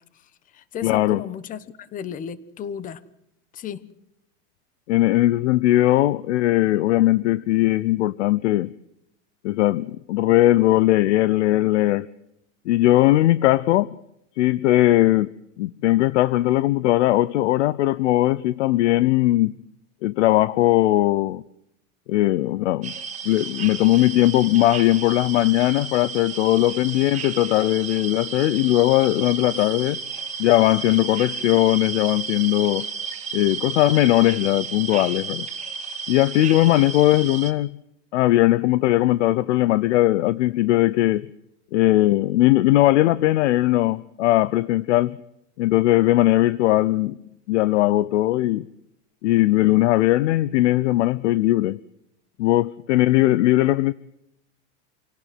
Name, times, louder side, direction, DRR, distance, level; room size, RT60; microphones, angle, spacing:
voice 1, 0.1-3.0 3.5-3.8, left 8 dB, 20° left, 1.2 m, -34 dB
voice 2, 0.8-1.2 4.9-8.7 9.4-12.1 12.7-13.9 14.4-15.3 15.6-19.5 20.0-21.4 22.1-22.9 23.2-30.0 30.4-32.9 33.3-35.5 36.1-37.8 38.1-41.3 41.7-45.2 45.6-47.2 47.5-48.7 49.2-51.8 52.4-53.9, left 16 dB, 70° left, 0.9 m, -19 dB
sound 1, 22.8-37.5, right 5 dB, 20° right, 2.5 m, -33 dB
28.0 x 17.5 x 7.8 m
supercardioid pair, 160°, 37 cm